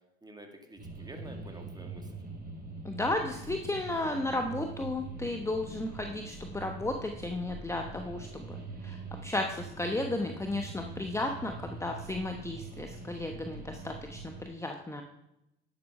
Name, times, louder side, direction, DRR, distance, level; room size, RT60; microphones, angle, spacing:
voice 1, 0.2-2.1 8.0-8.6, right 1 dB, 15° right, 4 dB, 2.2 m, -50 dB
sound 1, 0.8-14.5, right 3 dB, 30° right, 5.0 m, -43 dB
voice 2, 2.8-15.0, left 2 dB, 10° left, 4 dB, 1.0 m, -34 dB
10.5 x 8.1 x 5.4 m, 0.89 s
supercardioid pair, 85°, 30 cm